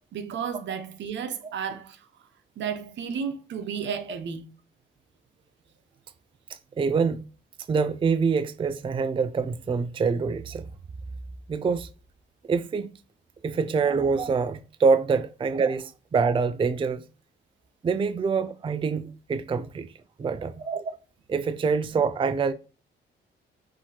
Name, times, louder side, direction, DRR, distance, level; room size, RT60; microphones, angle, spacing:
voice 1, 0.1-2.1 2.6-4.5, right 7 dB, 65° right, 0.9 m, -33 dB
voice 2, 6.5-7.2 7.7-10.7 11.5-11.9 12.5-12.9 13.4-17.0 17.8-19.9 20.2-21.0 21.3-22.5, right 5 dB, 25° right, 0.4 m, -25 dB
6.1 x 2.8 x 2.9 m
cardioid pair, 90°, 20 cm